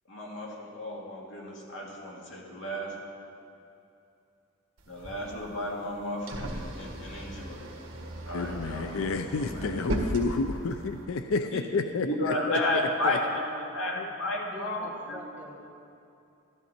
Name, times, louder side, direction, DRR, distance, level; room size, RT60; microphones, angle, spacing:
voice 1, 0.1-3.0 4.9-7.7 8.3-9.9 11.5-11.6 12.0-15.2, left 1 dB, 65° left, -2 dB, 2.2 m, -33 dB
sound 1, 4.8-11.1, right 1 dB, 75° right, 1.7 m, -37 dB
voice 2, 8.3-12.3, left 4 dB, 85° left, 8 dB, 0.5 m, -30 dB
voice 3, 14.4-15.6, equal, 10° right, -2 dB, 1.3 m, -45 dB
13.0 x 12.5 x 4.4 m, 2.6 s
head